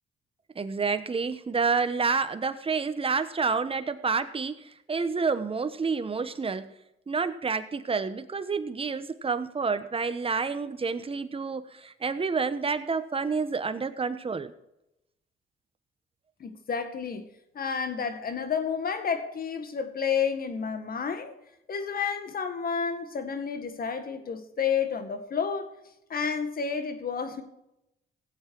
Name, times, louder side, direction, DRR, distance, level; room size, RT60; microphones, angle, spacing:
voice 1, 0.5-6.7 7.1-14.5, right 5 dB, 30° right, 1.1 m, -29 dB
voice 2, 16.4-17.3 17.5-21.3 21.7-25.7 26.1-27.4, left 6 dB, 50° left, 1.8 m, -30 dB
17.0 x 8.1 x 4.6 m
cardioid pair, 90°, 20 cm